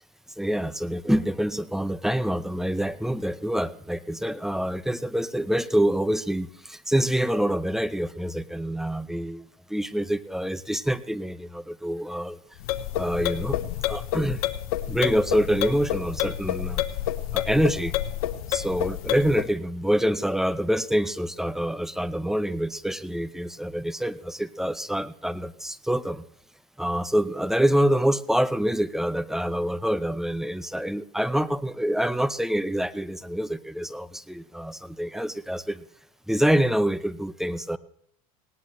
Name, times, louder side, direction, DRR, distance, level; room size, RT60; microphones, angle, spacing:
voice 1, 0.4-12.4 12.9-14.4 14.9-16.8 17.3-17.9 18.5-26.3 26.8-35.8 36.3-37.8, equal, ahead, 15 dB, 0.7 m, -26 dB
sound 1, 12.6-19.5, left 13 dB, 75° left, 1.0 m, -29 dB
18.5 x 18.0 x 3.2 m, 0.63 s
hypercardioid pair, 100°, 19 cm